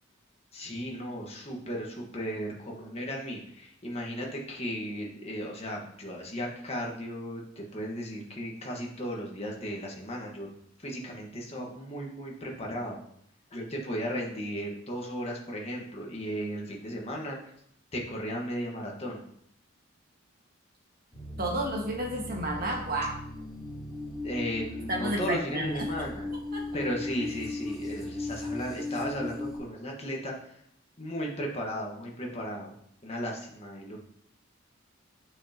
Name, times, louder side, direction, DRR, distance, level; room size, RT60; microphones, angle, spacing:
voice 1, 0.5-10.5 10.8-13.0 13.5-17.5 17.9-19.2 24.2-26.3 26.7-30.6 31.0-32.8 33.0-34.0, equal, 30° left, -1 dB, 1.5 m, -35 dB
sound 1, 21.1-29.6, left 2 dB, ahead, 3.2 m, -37 dB
voice 2, 21.4-23.2 24.9-25.9 26.5-26.6, right 1 dB, 45° right, -1 dB, 1.8 m, -31 dB
8.5 x 7.1 x 3.0 m, 0.69 s
head